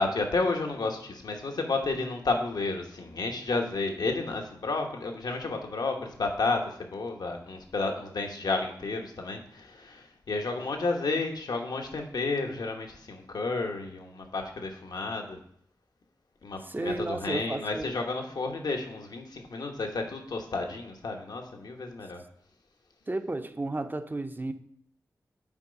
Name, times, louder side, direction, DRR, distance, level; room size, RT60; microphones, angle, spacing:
voice 1, 0.0-15.4 16.4-22.2, left 3 dB, 75° left, 1.1 m, -31 dB
voice 2, 16.6-18.0 23.1-24.5, right 2 dB, 30° right, 0.7 m, -33 dB
7.3 x 4.7 x 5.2 m
cardioid pair, 40°, 7 cm